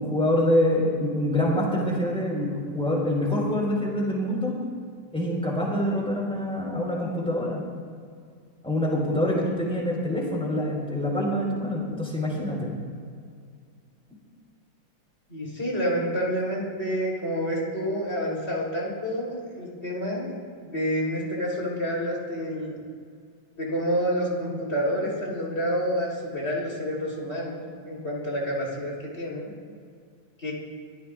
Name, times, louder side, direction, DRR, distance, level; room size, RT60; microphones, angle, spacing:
voice 1, 0.0-4.5 5.1-7.7 8.6-12.7, left 1 dB, 5° left, -3 dB, 4.6 m, -25 dB
voice 2, 15.3-20.3 20.6-22.7 23.6-29.5 30.4-30.5, equal, 35° left, -4 dB, 4.1 m, -28 dB
24.5 x 16.0 x 2.6 m, 2.1 s
omnidirectional pair, 2.1 m